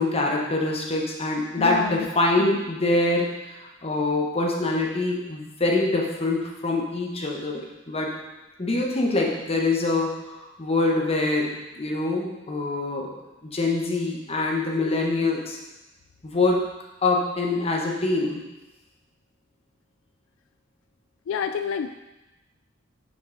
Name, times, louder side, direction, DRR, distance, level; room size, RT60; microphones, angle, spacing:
voice 1, 0.0-7.6 7.9-8.1 8.6-15.6 16.2-16.6 17.0-18.4, left 2 dB, 30° left, 0 dB, 1.0 m, -25 dB
voice 2, 1.6-2.1 2.4-2.6 21.3-22.0, left 7 dB, 80° left, 7 dB, 0.3 m, -29 dB
6.1 x 5.3 x 3.9 m, 1.0 s
head